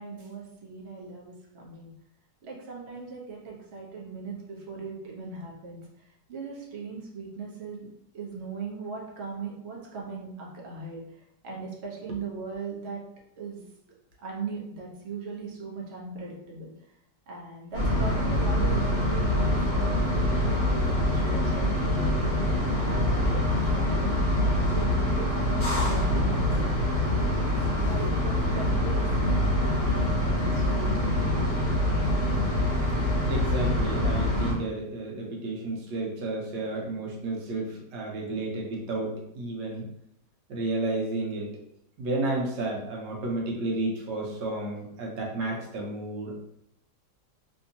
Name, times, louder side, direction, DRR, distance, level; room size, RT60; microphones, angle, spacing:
voice 1, 0.0-1.9 2.4-5.8 6.3-13.0 13.4-13.6 14.2-16.7 17.3-22.3 22.8-23.4 23.7-24.1 24.4-31.4, right 4 dB, 50° right, -3 dB, 0.9 m, -39 dB
sound 1, 17.7-34.5, left 1 dB, 40° left, 1.0 m, -25 dB
voice 2, 33.3-39.8 40.5-41.5 42.0-46.4, right 2 dB, 80° right, -1 dB, 1.4 m, -32 dB
3.4 x 2.8 x 2.7 m, 0.77 s
omnidirectional pair, 1.8 m